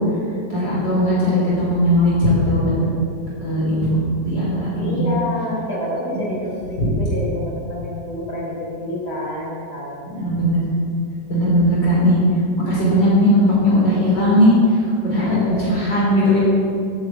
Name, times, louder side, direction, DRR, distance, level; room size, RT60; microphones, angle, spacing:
voice 1, 0.5-2.7 3.4-4.0 4.2-5.0 10.1-10.6 11.3-12.2 12.6-16.4, equal, 80° left, -7 dB, 5.0 m, -18 dB
voice 2, 4.8-10.3 15.2-15.6, left 1 dB, 65° left, -5 dB, 5.2 m, -28 dB
14.5 x 8.9 x 8.3 m, 2.4 s
omnidirectional pair, 1.9 m